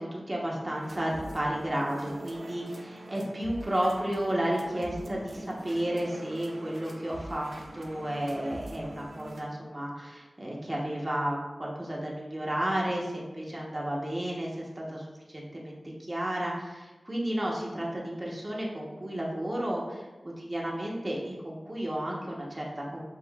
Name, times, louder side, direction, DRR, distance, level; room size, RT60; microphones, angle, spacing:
voice 1, 0.0-15.0 15.3-15.8 16.1-20.1 20.4-23.0, right 1 dB, 35° right, -3 dB, 0.9 m, -32 dB
sound 1, 0.7-9.4, right 1 dB, 80° right, 0.5 m, -44 dB
7.2 x 2.5 x 2.3 m, 1.2 s
wide cardioid pair, 65°, 0 cm